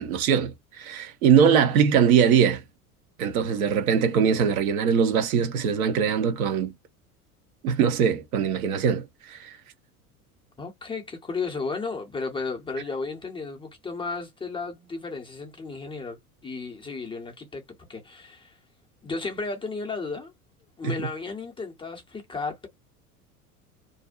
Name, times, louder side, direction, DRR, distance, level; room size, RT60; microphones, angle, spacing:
voice 1, 0.0-2.6 3.2-6.7 7.6-9.6 20.8-21.0, right 7 dB, 65° right, 0.7 m, -22 dB
voice 2, 10.6-17.6 17.9-18.6 19.0-20.3 20.8-22.7, left 4 dB, 10° left, 0.5 m, -34 dB
2.5 x 2.0 x 2.4 m
figure-of-eight pair, 75°, 46 cm